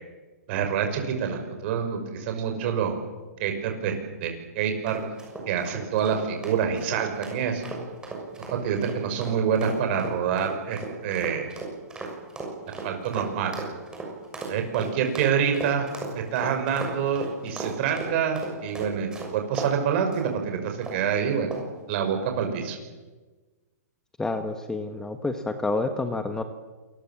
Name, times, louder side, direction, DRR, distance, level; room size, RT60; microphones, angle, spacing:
voice 1, 0.5-3.0 3.4-5.0 5.5-7.7 8.5-11.5 12.8-13.5 14.5-15.9 16.1-21.6 21.9-22.8, right 7 dB, 40° right, 5 dB, 5.9 m, -27 dB
sound 1, 4.9-19.7 20.1-20.3 20.8-21.1 21.5-21.8, right 3 dB, 10° right, 6.6 m, -36 dB
voice 2, 24.2-26.4, left 3 dB, 5° left, 8 dB, 1.4 m, -28 dB
28.0 x 21.5 x 7.4 m, 1.3 s
hypercardioid pair, 145°, 9 cm